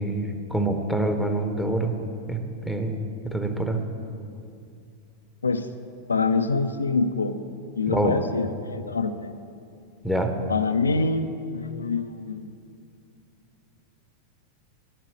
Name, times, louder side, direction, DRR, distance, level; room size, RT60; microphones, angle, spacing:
voice 1, 0.0-1.9 2.3-3.8 7.9-8.2 10.0-10.3, right 1 dB, ahead, 5 dB, 1.0 m, -26 dB
voice 2, 6.1-7.4 7.8-9.4 10.5-12.5, left 4 dB, 75° left, 9 dB, 0.4 m, -25 dB
8.8 x 7.5 x 8.2 m, 2.5 s
figure-of-eight pair, 90°, 0 cm